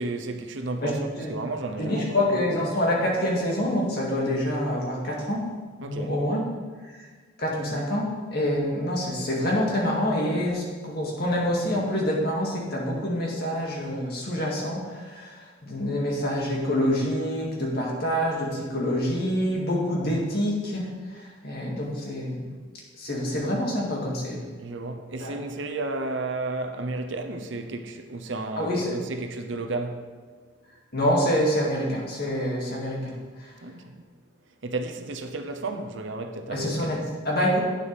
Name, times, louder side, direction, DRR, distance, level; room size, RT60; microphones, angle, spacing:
voice 1, 0.0-2.4 5.8-6.1 24.6-30.1 33.6-34.0 34.6-37.1, right 2 dB, 60° right, 0.8 m, -32 dB
voice 2, 0.8-1.3 1.8-5.4 5.8-6.4 6.9-7.0 7.4-15.4 15.6-20.8 21.1-22.5 23.0-24.4 25.2-25.3 28.6-29.0 30.9-33.0 33.4-33.5 36.5-37.0 37.2-37.6, equal, 50° left, 2.2 m, -26 dB
11.5 x 9.1 x 3.4 m
head